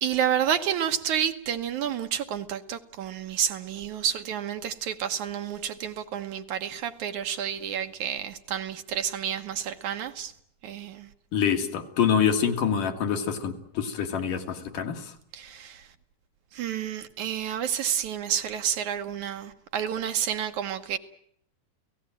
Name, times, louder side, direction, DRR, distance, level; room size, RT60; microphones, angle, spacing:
voice 1, 0.0-10.3 10.6-11.1 15.3-15.8 16.5-21.0, right 9 dB, 65° right, 2.4 m, -30 dB
voice 2, 11.3-15.1, left 7 dB, 70° left, 3.5 m, -26 dB
29.5 x 18.0 x 9.0 m
omnidirectional pair, 3.9 m